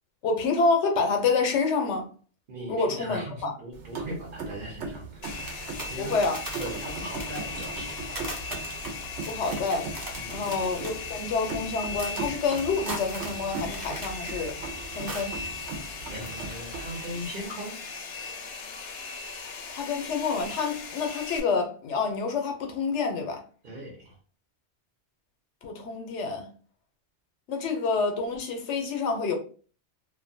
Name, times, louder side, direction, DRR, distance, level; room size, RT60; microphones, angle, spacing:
voice 1, 0.2-2.1 2.7-3.5 6.0-6.4 9.2-9.9 10.3-14.6 14.9-15.3 19.7-23.4 25.6-26.5 27.5-29.3, left 4 dB, 90° left, 1.0 m, -28 dB
voice 2, 2.5-5.4 5.9-6.3 6.6-8.0 10.1-10.5 16.1-18.0 23.6-24.2, equal, 55° right, 0.9 m, -39 dB
sound 1, 3.7-17.2, right 4 dB, 85° right, 0.9 m, -39 dB
Domestic sounds home sounds, 5.2-21.4, left 4 dB, 70° left, 0.8 m, -38 dB
sound 2, 5.4-15.5 15.7-17.0 17.3-17.4, right 1 dB, 25° right, 0.5 m, -41 dB
2.5 x 2.2 x 2.5 m
omnidirectional pair, 1.2 m